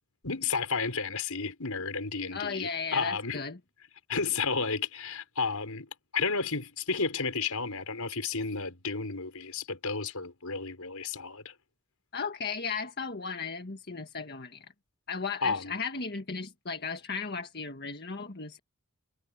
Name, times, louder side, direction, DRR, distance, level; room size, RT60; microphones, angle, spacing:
voice 1, 0.2-3.4 4.1-5.9 6.1-11.5 15.4-15.7, left 4 dB, 90° left, 5.1 m, -32 dB
voice 2, 2.3-3.6 12.1-14.7 15.1-18.6, left 5 dB, 50° left, 1.7 m, -35 dB
head